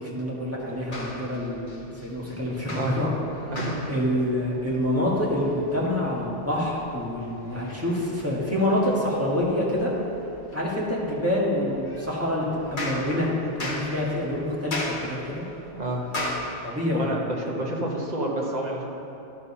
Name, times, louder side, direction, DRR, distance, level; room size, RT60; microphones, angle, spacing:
voice 1, 0.0-3.1 3.4-3.5 3.9-9.9 10.5-13.3 13.6-15.4 16.6-17.5, left 1 dB, 10° right, -6 dB, 1.6 m, -27 dB
sound 1, 0.6-16.4, left 1 dB, 45° left, 1.3 m, -39 dB
voice 2, 3.4-3.8 15.7-16.0 16.9-18.8, right 1 dB, 40° right, -1 dB, 1.2 m, -29 dB
12.0 x 4.6 x 5.5 m, 2.9 s
omnidirectional pair, 1.2 m